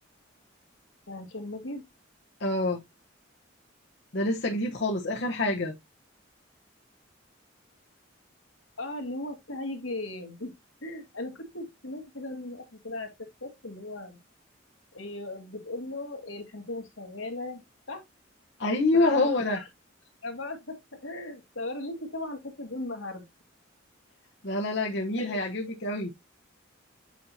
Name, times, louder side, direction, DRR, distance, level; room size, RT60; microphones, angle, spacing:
voice 1, 1.1-1.8 8.8-10.5 10.8-13.1 13.4-14.2 14.9-17.6 17.9-18.0 18.9-19.7 20.2-23.2 25.2-25.4, left 2 dB, 90° left, 2.2 m, -37 dB
voice 2, 2.4-2.8 4.1-5.7 18.6-19.6 24.4-26.1, left 2 dB, 60° left, 1.1 m, -26 dB
8.5 x 5.5 x 2.8 m
head